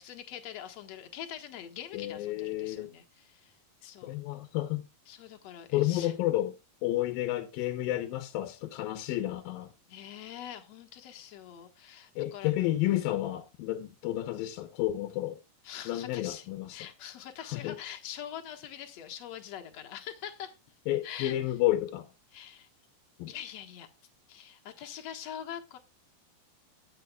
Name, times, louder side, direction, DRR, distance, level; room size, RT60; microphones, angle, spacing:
voice 1, 0.0-3.5 3.8-4.2 5.1-6.1 9.9-12.5 15.6-20.6 21.0-21.4 22.3-22.7 23.3-23.9 24.3-25.8, left 10 dB, 60° left, 2.0 m, -44 dB
voice 2, 1.9-2.9 3.8-4.9 5.7-6.5 6.8-9.7 12.2-15.4 15.9-16.8 17.4-17.8 20.9-22.1 23.2-23.3, left 14 dB, 75° left, 2.4 m, -31 dB
20.0 x 7.1 x 2.3 m
omnidirectional pair, 4.4 m